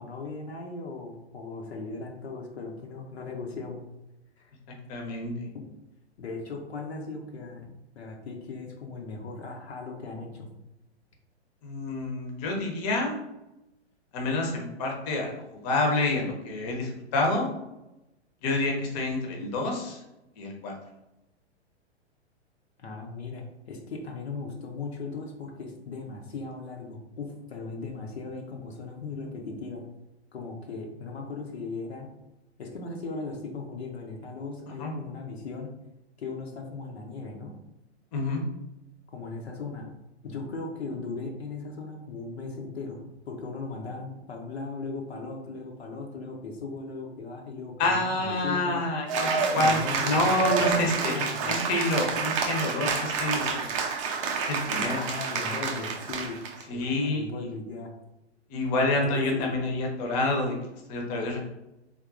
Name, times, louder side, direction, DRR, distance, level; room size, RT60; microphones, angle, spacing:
voice 1, 0.0-3.8 4.4-4.5 5.5-5.7 6.2-7.7 7.9-10.5 22.8-29.8 30.3-32.1 32.6-35.7 36.2-37.5 39.1-39.9 40.2-43.0 43.3-48.8 49.5-51.5 55.0-56.4 56.7-57.9 58.9-59.6, left 3 dB, 65° left, 0 dB, 0.8 m, -38 dB
voice 2, 4.9-5.5 11.6-13.2 14.1-17.5 18.4-20.0 20.4-20.7 34.8-34.9 38.1-38.4 47.8-49.8 50.0-53.7 54.4-55.0 56.7-57.3 58.5-60.5 60.9-61.4, left 2 dB, 35° left, 1 dB, 0.8 m, -28 dB
Cheering / Applause, 49.1-56.6, right 5 dB, 30° right, 0.4 m, -28 dB
3.6 x 2.6 x 2.5 m, 0.92 s
figure-of-eight pair, 110°, 34 cm